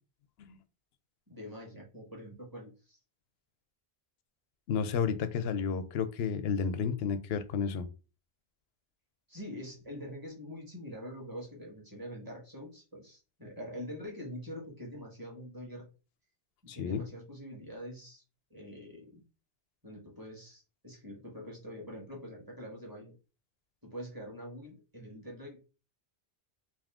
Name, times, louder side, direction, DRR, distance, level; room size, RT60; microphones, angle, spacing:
voice 1, 1.3-3.0 9.3-15.9 16.6-18.2 18.5-19.2 19.8-23.1 23.8-25.6, equal, 20° right, 1.5 m, -45 dB
voice 2, 4.7-7.9 16.7-17.0, left 6 dB, 70° left, 0.8 m, -31 dB
3.5 x 2.6 x 3.5 m
omnidirectional pair, 1.1 m